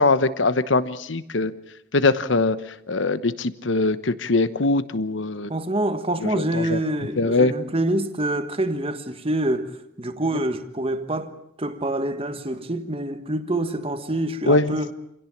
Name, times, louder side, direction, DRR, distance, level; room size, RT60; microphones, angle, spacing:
voice 1, 0.0-1.5 1.9-2.6 2.9-5.5 6.2-6.8 7.2-7.5 14.5-14.8, left 3 dB, 70° left, 1.1 m, -22 dB
voice 2, 5.5-9.7 10.0-11.3 11.6-14.9, right 1 dB, 30° right, 1.4 m, -26 dB
27.0 x 17.0 x 8.7 m
head